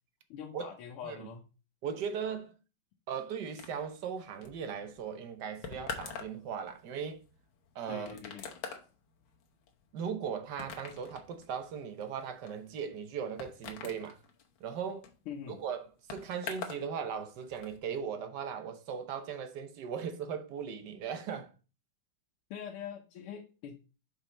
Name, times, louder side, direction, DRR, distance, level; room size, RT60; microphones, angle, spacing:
voice 1, 0.3-1.4 7.9-8.5 15.3-15.6 22.5-23.8, left 8 dB, 90° left, 1.7 m, -43 dB
voice 2, 1.8-2.5 3.1-7.2 7.7-8.2 9.9-14.2 14.6-15.1 15.5-15.8 16.1-21.5, right 7 dB, 60° right, 1.3 m, -38 dB
sound 1, 3.6-16.9 17.1-17.8, left 6 dB, 70° left, 1.8 m, -46 dB
5.6 x 5.5 x 4.2 m
omnidirectional pair, 2.3 m